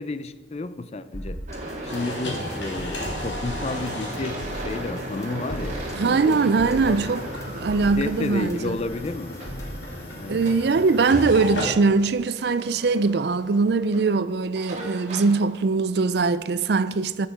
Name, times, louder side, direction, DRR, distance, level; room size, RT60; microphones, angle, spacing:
voice 1, 0.0-1.4 1.8-7.1 8.0-9.4 10.2-10.4, left 3 dB, 35° left, 0.4 m, -32 dB
sound 1, 1.1-9.9, equal, 15° left, 1.0 m, -38 dB
sound 2, 1.5-16.2, right 1 dB, 40° right, 1.6 m, -38 dB
sound 3, 1.9-13.6, left 1 dB, 75° left, 2.4 m, -35 dB
voice 2, 5.9-7.2 7.5-8.8 10.3-17.3, right 4 dB, 60° right, 0.4 m, -22 dB
14.0 x 6.5 x 4.9 m
head